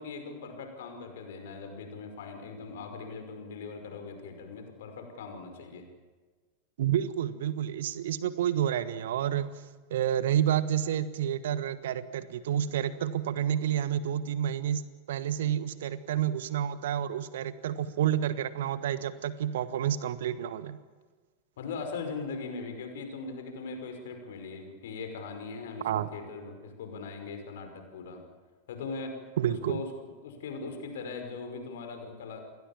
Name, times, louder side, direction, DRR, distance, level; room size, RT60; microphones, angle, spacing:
voice 1, 0.0-5.9 21.6-28.2 28.7-29.2 29.5-32.4, left 4 dB, 60° left, 6 dB, 5.4 m, -40 dB
voice 2, 6.8-9.5 9.9-14.8 15.1-20.8 25.8-26.1 29.4-29.8, right 10 dB, 60° right, 14 dB, 1.3 m, -29 dB
29.5 x 22.0 x 7.4 m, 1.3 s
figure-of-eight pair, 90°, 0 cm